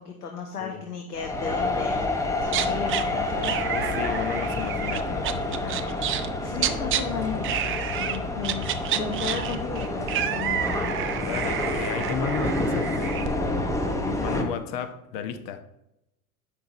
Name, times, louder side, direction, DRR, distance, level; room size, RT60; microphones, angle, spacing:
voice 1, 0.0-4.0 6.4-7.5 7.8-11.7 12.6-13.0 14.0-14.6, left 6 dB, 85° left, 2 dB, 1.2 m, -35 dB
sound 1, 1.1-14.4, left 2 dB, 5° left, 0.9 m, -29 dB
sound 2, 1.8-8.5, left 7 dB, 30° left, 1.8 m, -42 dB
sound 3, 2.4-3.0 3.4-6.3 6.6-7.0 7.4-8.2 8.4-13.3, right 10 dB, 30° right, 0.6 m, -30 dB
voice 2, 3.7-5.9 11.2-13.7 14.2-15.6, left 7 dB, 50° left, 8 dB, 1.1 m, -34 dB
8.2 x 5.8 x 4.1 m, 0.85 s
hypercardioid pair, 95°, 45 cm